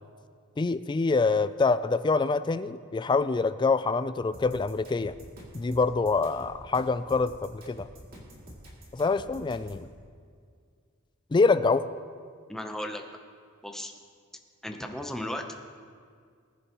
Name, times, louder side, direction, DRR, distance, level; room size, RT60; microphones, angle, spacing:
voice 1, 0.6-5.1 5.5-7.9 8.9-9.9 11.3-11.8, left 4 dB, 20° left, 13 dB, 0.3 m, -25 dB
sound 1, 4.3-9.8, equal, 45° right, 2.5 m, -48 dB
voice 2, 12.5-13.0 13.6-13.9 14.6-15.6, left 1 dB, ahead, 3 dB, 0.8 m, -35 dB
20.0 x 9.9 x 3.0 m, 2.1 s
head